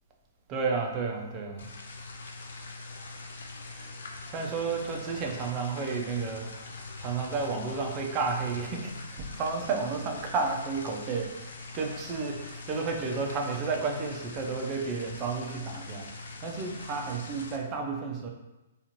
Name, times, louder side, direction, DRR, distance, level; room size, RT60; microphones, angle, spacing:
voice 1, 0.5-1.7 3.7-3.9 4.3-6.5 7.0-16.1 16.4-18.3, right 4 dB, 30° right, 1 dB, 0.5 m, -32 dB
sound 1, 1.6-17.6, left 3 dB, 70° left, 0.4 m, -43 dB
2.5 x 2.4 x 2.9 m, 0.99 s
hypercardioid pair, 130°, 0 cm